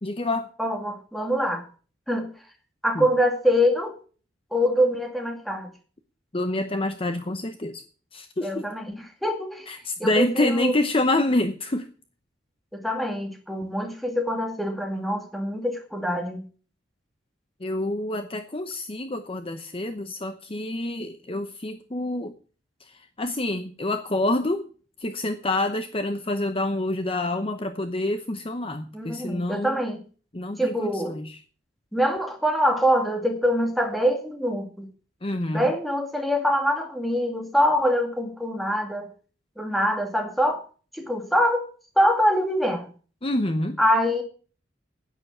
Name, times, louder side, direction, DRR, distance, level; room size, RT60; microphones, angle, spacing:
voice 1, 0.0-0.5 2.9-3.1 6.3-7.8 8.1-8.7 9.7-11.9 17.6-22.4 22.8-24.7 25.0-29.8 30.3-31.3 35.2-35.7 43.2-43.8, left 2 dB, 30° left, 8 dB, 0.8 m, -27 dB
voice 2, 0.6-1.6 2.1-2.3 2.8-4.0 4.5-5.7 8.4-8.9 9.2-9.7 10.0-10.7 12.7-16.4 28.9-30.0 30.6-31.2 31.9-34.9 35.5-39.1 39.6-40.6 40.9-41.7 42.0-42.9 43.8-44.2, equal, ahead, 3 dB, 2.2 m, -24 dB
10.5 x 9.4 x 7.2 m, 0.39 s
head